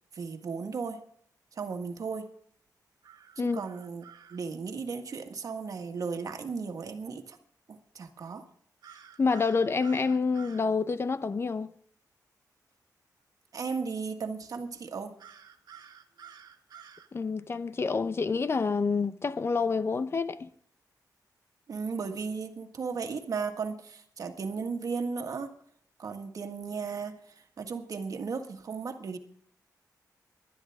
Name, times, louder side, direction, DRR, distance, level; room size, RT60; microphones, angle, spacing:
voice 1, 0.1-1.0 1.5-2.3 3.4-4.0 4.3-7.4 7.7-8.5 13.5-15.2 21.7-25.5 26.0-29.2, right 5 dB, 55° right, 1.7 m, -35 dB
sound 1, 3.0-4.4 8.8-10.7 15.2-17.1, right 8 dB, 80° right, 1.6 m, -51 dB
voice 2, 9.2-11.7 17.1-20.5, left 4 dB, 35° left, 0.8 m, -28 dB
20.0 x 12.0 x 3.6 m
wide cardioid pair, 115°, 7 cm